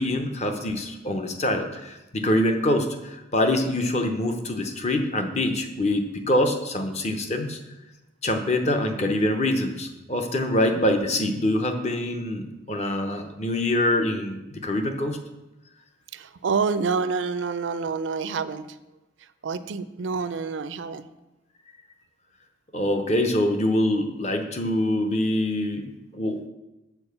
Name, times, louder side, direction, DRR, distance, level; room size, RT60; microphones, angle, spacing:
voice 1, 0.0-7.6 8.2-15.2 22.7-26.5, left 1 dB, 35° left, 5 dB, 0.8 m, -25 dB
voice 2, 16.1-18.7 19.4-21.1, right 5 dB, 85° right, 13 dB, 0.4 m, -27 dB
7.0 x 4.5 x 6.8 m, 0.98 s
head